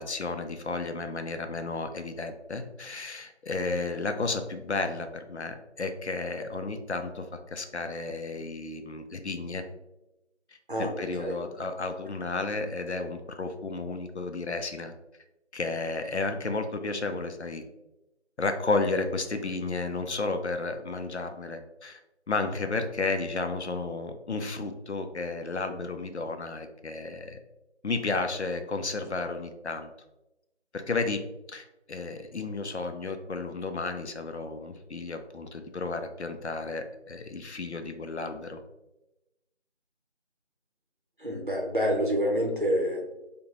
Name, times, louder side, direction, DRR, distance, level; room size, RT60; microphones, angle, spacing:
voice 1, 0.0-9.6 10.8-14.9 15.5-17.6 18.4-22.0 22.3-27.4 27.8-29.9 30.7-31.2 31.5-38.6, left 3 dB, 70° left, 7 dB, 0.5 m, -32 dB
voice 2, 10.7-11.3 41.2-43.1, equal, 45° right, 0 dB, 0.7 m, -27 dB
5.1 x 2.2 x 2.9 m, 0.96 s
figure-of-eight pair, 170°, 36 cm